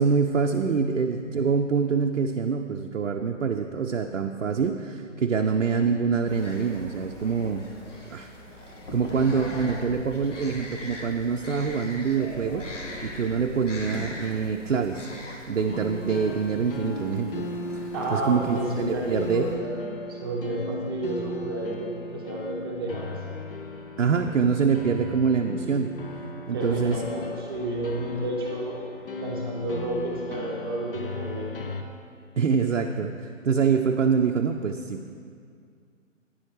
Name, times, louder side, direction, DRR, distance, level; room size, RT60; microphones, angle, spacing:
voice 1, 0.0-7.6 8.1-8.3 8.9-12.7 13.0-15.1 15.5-17.5 17.7-19.5 24.0-25.9 26.5-27.0 32.4-35.1, right 5 dB, 65° right, 3 dB, 0.5 m, -25 dB
sound 1, 6.3-19.5, left 1 dB, 65° left, 1.5 m, -41 dB
sound 2, 15.7-31.8, left 2 dB, 45° left, 0.6 m, -37 dB
voice 2, 17.9-23.1 26.5-31.5, right 1 dB, 20° right, -2 dB, 0.7 m, -31 dB
9.2 x 8.2 x 3.2 m, 2.3 s
figure-of-eight pair, 135°, 39 cm